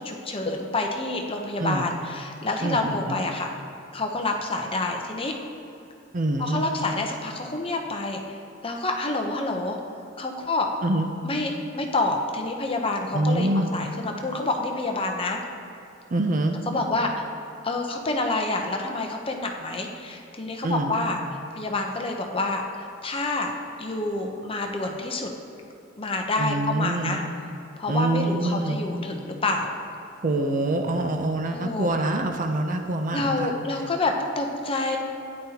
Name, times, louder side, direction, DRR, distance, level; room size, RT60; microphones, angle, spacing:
voice 1, 0.0-3.5 3.9-5.3 6.4-8.2 8.6-9.8 10.2-10.7 11.2-15.4 16.7-17.1 17.6-21.2 21.5-23.5 23.8-25.3 26.0-27.2 27.8-29.7 31.5-31.9 33.1-35.0, left 2 dB, 30° left, 2 dB, 0.8 m, -28 dB
voice 2, 2.6-3.2 6.1-6.7 10.8-11.1 13.1-13.7 16.1-16.6 20.6-20.9 26.4-27.2 27.9-28.8 30.2-33.5, right 1 dB, 40° right, 5 dB, 0.6 m, -25 dB
12.5 x 9.8 x 2.9 m, 2.7 s
head